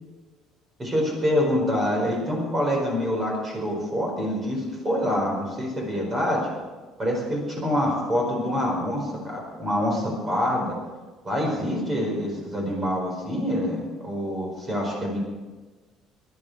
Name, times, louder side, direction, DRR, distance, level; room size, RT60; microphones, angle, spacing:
voice 1, 0.8-6.5 7.0-10.8 11.2-15.2, equal, 20° right, -1 dB, 4.7 m, -26 dB
23.0 x 11.0 x 4.8 m, 1.3 s
cardioid pair, 165°, 0 cm